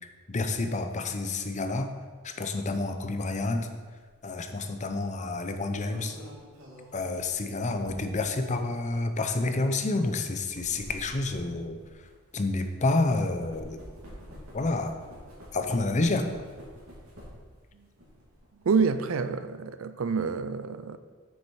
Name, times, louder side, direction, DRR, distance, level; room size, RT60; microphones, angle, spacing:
voice 1, 0.3-1.9 2.2-3.7 4.2-6.2 6.9-11.8 12.3-13.8 14.5-15.0 15.5-16.3, left 2 dB, 35° left, 0.6 m, -29 dB
sound 1, 4.1-4.2 5.5-8.4 9.1-9.2 10.3-12.9 13.2-17.6 17.9-18.8, equal, 85° right, 2.7 m, -48 dB
voice 2, 18.6-21.0, right 5 dB, 70° right, 0.5 m, -27 dB
7.2 x 6.6 x 4.7 m
head